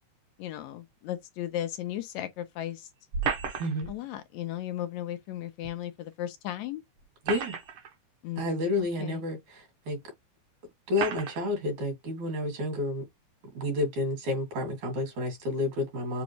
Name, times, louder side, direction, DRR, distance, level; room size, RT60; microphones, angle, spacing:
voice 1, 0.4-2.9 3.9-6.8 8.2-9.2, left 12 dB, 80° left, 1.9 m, -36 dB
sound 1, 3.1-3.9 5.6-5.7 7.0-7.9 8.8-8.9 9.9-10.0 10.9-11.4, right 6 dB, 60° right, 1.7 m, -33 dB
voice 2, 8.4-10.0 10.9-13.0 13.6-16.2, left 2 dB, 75° right, 4.0 m, -30 dB
7.0 x 2.4 x 3.1 m
omnidirectional pair, 3.4 m